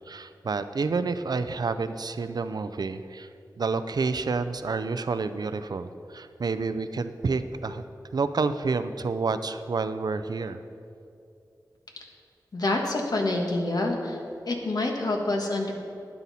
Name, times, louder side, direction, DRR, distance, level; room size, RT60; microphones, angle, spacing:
voice 1, 0.1-3.3 3.6-7.8 8.1-10.6, right 4 dB, 70° right, 11 dB, 0.5 m, -29 dB
voice 2, 12.5-14.2 14.5-15.7, left 2 dB, 65° left, 1 dB, 1.5 m, -27 dB
12.5 x 9.7 x 4.2 m, 2.6 s
wide cardioid pair, 80°, 7 cm